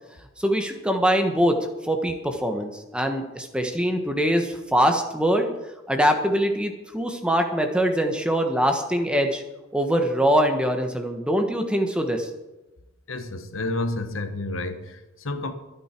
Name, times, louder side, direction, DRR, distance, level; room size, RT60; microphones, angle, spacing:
voice 1, 0.4-1.6 1.8-5.5 5.9-9.4 9.7-12.3, equal, 5° right, 5 dB, 1.3 m, -23 dB
voice 2, 13.1-15.5, left 2 dB, 75° left, 8 dB, 1.4 m, -30 dB
23.5 x 9.3 x 4.5 m, 1.0 s
head